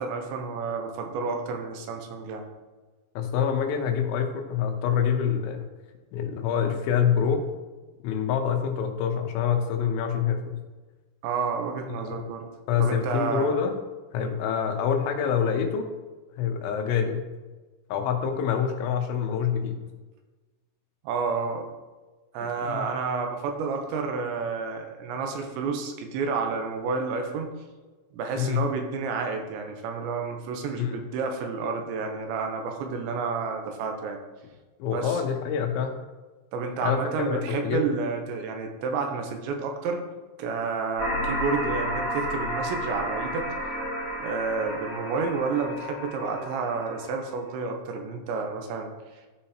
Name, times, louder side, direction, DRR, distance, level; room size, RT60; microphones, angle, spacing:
voice 1, 0.0-2.4 11.2-12.5 12.8-13.5 14.2-14.3 21.0-21.7 22.3-27.5 28.1-34.2 34.9-35.2 36.5-40.0 40.4-43.5 44.2-48.9, right 4 dB, 80° right, 3 dB, 3.1 m, -30 dB
voice 2, 3.2-5.6 6.1-7.4 8.0-10.6 12.0-12.3 12.7-13.8 14.1-15.9 16.4-17.2 17.9-19.8 22.6-22.8 28.4-28.7 30.8-31.0 34.8-35.9 36.8-37.8, left 7 dB, 85° left, 4 dB, 3.4 m, -26 dB
sound 1, 41.0-47.5, equal, 65° left, 1.4 m, -32 dB
13.5 x 5.5 x 2.9 m, 1.2 s
omnidirectional pair, 5.3 m